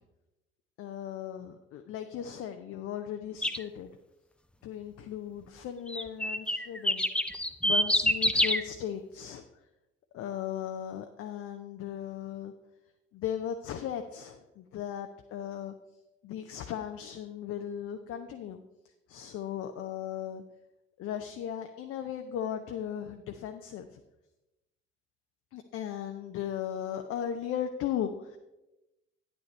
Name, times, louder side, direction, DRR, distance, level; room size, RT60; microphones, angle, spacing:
voice 1, 0.8-3.9 4.6-7.0 7.6-9.4 10.1-12.5 13.1-15.7 16.2-18.6 19.1-20.4 21.0-24.0 25.5-28.4, left 9 dB, 50° left, 6 dB, 0.6 m, -37 dB
sound 1, 3.4-3.6 5.9-8.6, left 1 dB, 5° left, 0.4 m, -26 dB
9.6 x 9.2 x 3.2 m, 0.98 s
figure-of-eight pair, 45°, 31 cm